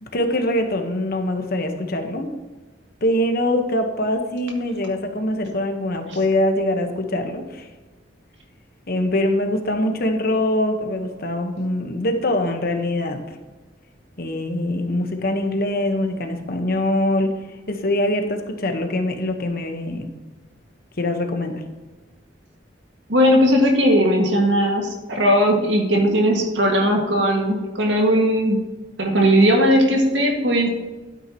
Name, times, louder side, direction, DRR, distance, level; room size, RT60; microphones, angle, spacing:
voice 1, 0.0-2.3 3.0-7.7 8.9-13.4 14.2-20.1 21.0-21.6, left 1 dB, 55° left, 5 dB, 1.2 m, -23 dB
voice 2, 23.1-28.6 29.0-30.7, equal, 85° right, 1 dB, 2.0 m, -18 dB
12.5 x 9.0 x 3.0 m, 1.2 s
head